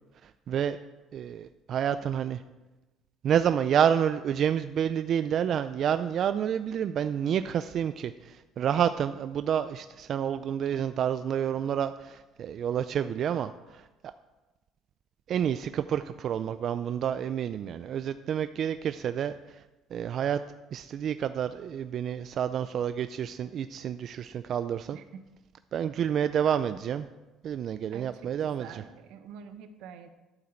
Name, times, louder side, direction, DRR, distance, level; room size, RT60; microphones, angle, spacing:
voice 1, 0.2-0.8 1.1-2.4 3.2-13.9 15.3-19.6 19.9-20.4 20.7-25.0 25.7-27.1 27.4-28.8, right 9 dB, 45° right, 11 dB, 0.3 m, -29 dB
voice 2, 24.9-25.2 27.9-30.1, right 7 dB, 80° right, 9 dB, 0.9 m, -46 dB
11.5 x 7.9 x 4.4 m, 1.1 s
cardioid pair, 150°, 0 cm